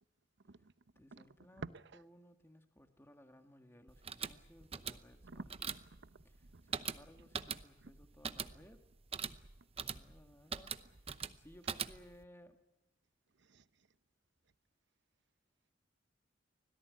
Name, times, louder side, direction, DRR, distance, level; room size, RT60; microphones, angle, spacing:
voice 1, 0.4-2.0 5.2-6.8 7.2-7.3 7.8-7.9 13.4-13.9, right 3 dB, 65° right, 14 dB, 0.8 m, -53 dB
voice 2, 1.0-1.7 1.9-5.7 6.7-8.8 9.8-10.8 11.4-12.6, equal, 10° left, 6 dB, 1.7 m, -60 dB
sound 1, 3.9-12.2, right 6 dB, 30° right, 0.8 m, -43 dB
25.0 x 17.5 x 9.6 m, 0.99 s
head